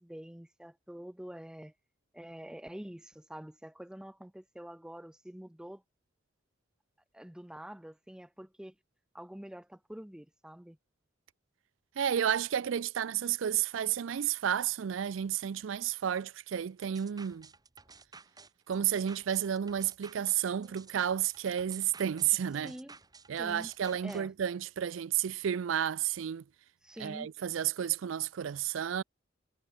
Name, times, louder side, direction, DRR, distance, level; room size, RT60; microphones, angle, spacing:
voice 1, 0.0-1.7 2.1-5.8 7.1-8.7 9.1-10.8 22.6-23.0 23.4-23.7 24.0-24.3 26.8-27.3, equal, 5° right, 0.4 m, -46 dB
voice 2, 12.0-17.5 18.7-22.7 23.3-26.4 27.0-29.0, right 9 dB, 70° right, 0.4 m, -31 dB
sound 1, 16.8-24.2, right 4 dB, 20° right, 2.9 m, -54 dB
head